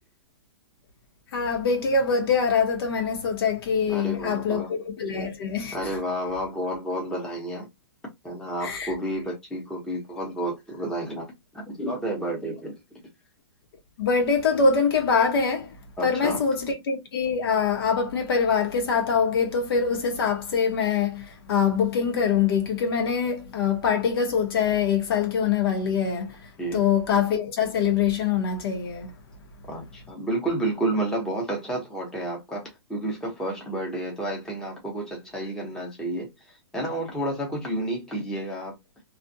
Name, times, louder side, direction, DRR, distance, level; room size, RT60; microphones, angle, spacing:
voice 1, 1.3-5.8 8.6-8.9 14.0-15.7 16.0-26.4 26.7-29.1, left 6 dB, 60° left, 1.0 m, -24 dB
voice 2, 3.9-4.7 5.7-7.7 8.2-11.3 11.5-12.7 16.0-16.4 26.6-26.8 29.7-36.3 36.7-38.8, right 1 dB, 5° left, 0.9 m, -30 dB
2.5 x 2.4 x 2.6 m
hypercardioid pair, 145°, 14 cm